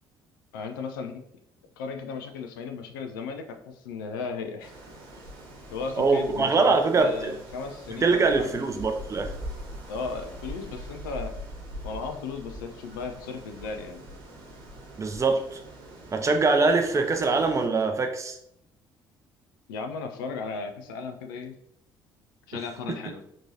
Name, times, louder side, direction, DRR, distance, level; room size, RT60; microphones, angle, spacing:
voice 1, 0.5-1.2 1.8-4.7 5.7-8.6 9.9-11.4 11.8-14.1 19.7-21.6 22.5-23.2, left 4 dB, 70° left, 6 dB, 0.4 m, -35 dB
sound 1, 4.6-17.7, equal, 60° right, 1.2 m, -42 dB
voice 2, 6.0-7.3 8.0-9.3 15.0-15.6 16.1-18.4, right 3 dB, 25° right, 5 dB, 0.6 m, -23 dB
4.4 x 2.9 x 2.7 m, 0.74 s
figure-of-eight pair, 50°, 11 cm